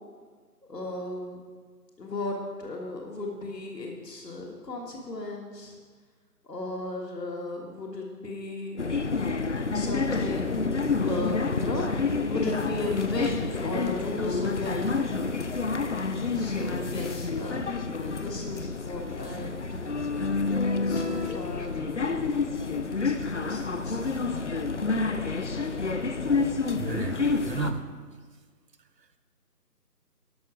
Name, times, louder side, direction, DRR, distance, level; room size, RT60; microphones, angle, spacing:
voice 1, 0.7-1.4 2.0-5.8 6.4-8.9 9.7-11.9 12.3-15.0 16.3-20.2 20.8-22.2 22.8-24.1, left 2 dB, 80° left, 0 dB, 1.8 m, -35 dB
sound 1, 8.8-27.7, left 4 dB, 50° left, 0.5 m, -29 dB
voice 2, 26.7-27.9 29.0-29.2, right 4 dB, 90° right, 10 dB, 1.0 m, -34 dB
12.0 x 6.0 x 5.0 m, 1.5 s
figure-of-eight pair, 160°, 48 cm